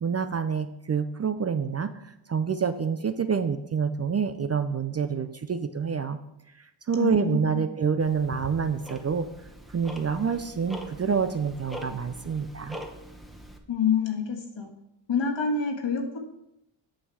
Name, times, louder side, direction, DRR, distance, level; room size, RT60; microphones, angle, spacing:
voice 1, 0.0-6.2 6.6-9.3 9.7-12.8, right 6 dB, 30° right, 10 dB, 0.5 m, -27 dB
voice 2, 7.0-7.6 13.7-14.7 15.1-16.2, left 6 dB, 60° left, 2 dB, 1.7 m, -27 dB
Tick-tock, 8.0-13.6, equal, ahead, 1.0 m, -43 dB
8.7 x 5.5 x 4.7 m, 0.85 s
cardioid pair, 90°, 49 cm